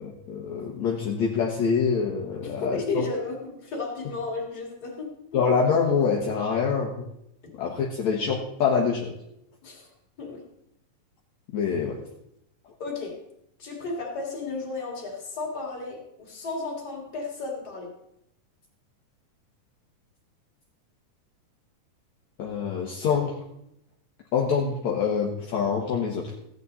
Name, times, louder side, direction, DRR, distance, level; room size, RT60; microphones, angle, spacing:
voice 1, 0.0-2.8 5.3-7.0 7.6-9.1 11.5-12.0 22.4-23.3 24.3-26.3, left 6 dB, 65° left, -2 dB, 2.5 m, -25 dB
voice 2, 2.4-5.4 9.6-9.9 10.2-10.4 12.8-13.2 13.6-17.9, left 3 dB, 30° left, -1 dB, 3.1 m, -33 dB
15.0 x 9.1 x 4.1 m, 0.79 s
omnidirectional pair, 3.6 m